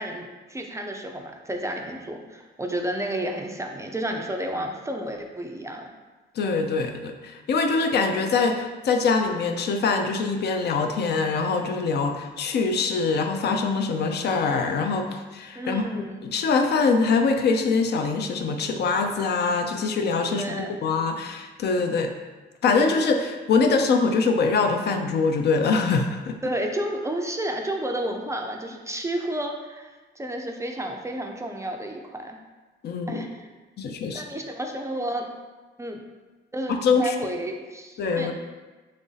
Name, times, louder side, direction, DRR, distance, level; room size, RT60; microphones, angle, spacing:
voice 1, 0.0-5.9 15.6-16.2 20.3-20.9 26.4-32.4 33.1-33.5 34.1-35.2 35.8-36.0 36.5-38.3, right 1 dB, 15° right, 2 dB, 0.3 m, -31 dB
voice 2, 6.4-15.8 16.2-22.1 22.6-26.4 32.8-33.3 33.8-34.2 36.7-37.1 38.0-38.3, left 4 dB, 55° left, 5 dB, 0.4 m, -23 dB
3.1 x 2.6 x 3.9 m, 1.2 s
cardioid pair, 90°, 20 cm